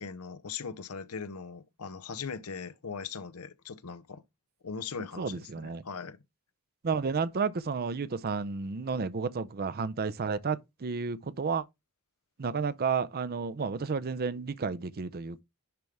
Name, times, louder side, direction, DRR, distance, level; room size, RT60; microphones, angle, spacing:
voice 1, 0.0-4.2 4.6-6.2, left 5 dB, 80° left, 0.8 m, -40 dB
voice 2, 5.2-5.8 6.8-11.6 12.4-15.4, right 5 dB, 45° right, 0.5 m, -31 dB
10.5 x 3.5 x 3.3 m
head